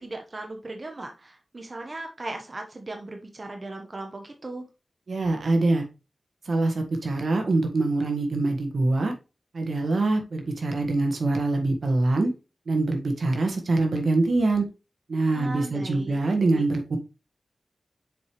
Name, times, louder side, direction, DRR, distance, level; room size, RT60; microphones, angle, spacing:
voice 1, 0.0-4.6 15.3-16.2 16.5-16.6, right 2 dB, 40° right, 3 dB, 1.1 m, -37 dB
voice 2, 5.1-5.9 6.4-9.1 9.5-12.3 12.7-14.6 15.1-17.0, right 2 dB, 70° right, 4 dB, 1.6 m, -24 dB
7.0 x 4.7 x 3.1 m, 0.29 s
wide cardioid pair, 90°, 0 cm